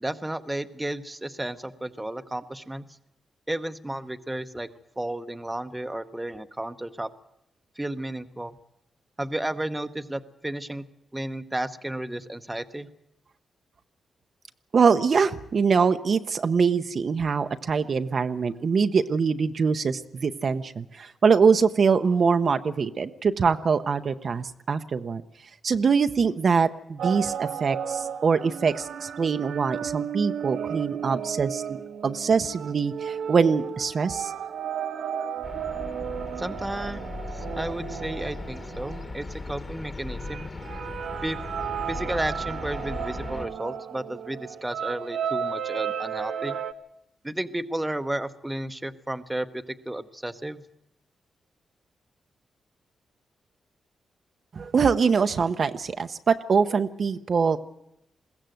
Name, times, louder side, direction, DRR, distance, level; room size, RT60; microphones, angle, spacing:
voice 1, 0.0-2.8 3.5-4.7 5.0-7.1 7.8-8.6 9.2-10.8 11.1-12.9 36.4-37.0 37.3-40.5 41.2-41.4 41.9-46.6 47.2-50.6, right 1 dB, 10° right, 9 dB, 0.8 m, -33 dB
voice 2, 14.7-25.2 25.6-31.8 32.0-34.3 54.5-57.6, right 5 dB, 45° right, 9 dB, 0.7 m, -23 dB
sound 1, 27.0-39.5 40.2-46.7, right 8 dB, 80° right, 1.3 m, -34 dB
sound 2, 35.4-43.5, left 3 dB, 30° left, 1.6 m, -38 dB
21.5 x 16.5 x 7.8 m, 0.84 s
wide cardioid pair, 155°, 0 cm